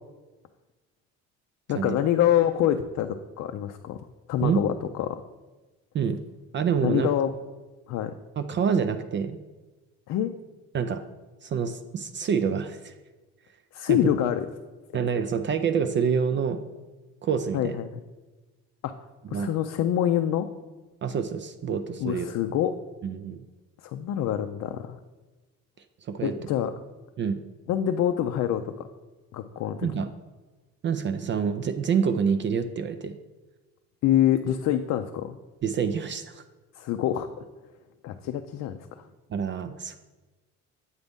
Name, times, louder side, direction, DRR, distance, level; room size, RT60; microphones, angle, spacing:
voice 1, 1.7-4.0 4.3-5.2 6.8-7.3 7.9-8.1 10.1-10.3 13.7-14.5 17.5-18.0 18.8-20.5 22.0-22.7 23.8-25.0 26.2-26.7 27.7-28.9 29.3-29.9 34.0-35.4 36.8-37.4 38.0-39.1, left 11 dB, 60° left, 7 dB, 0.4 m, -26 dB
voice 2, 6.5-7.1 8.4-9.4 10.7-11.0 11.4-12.9 13.9-14.0 14.9-16.6 17.2-17.8 19.3-19.5 21.0-22.3 23.0-23.4 26.0-26.3 27.2-27.4 29.8-30.1 30.8-33.2 35.6-36.4 39.3-40.0, right 6 dB, 40° right, 10 dB, 0.4 m, -27 dB
8.1 x 3.9 x 3.5 m, 1.2 s
cardioid pair, 95°, 31 cm